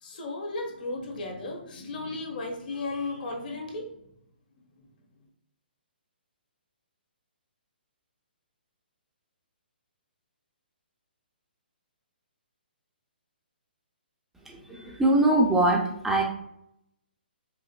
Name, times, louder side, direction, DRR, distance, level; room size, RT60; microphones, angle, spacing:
voice 1, 0.0-4.0, left 2 dB, 55° left, 1 dB, 1.2 m, -35 dB
voice 2, 14.5-16.2, right 2 dB, 5° right, -1 dB, 0.4 m, -23 dB
4.9 x 2.7 x 2.3 m, 0.75 s
figure-of-eight pair, 135°, 6 cm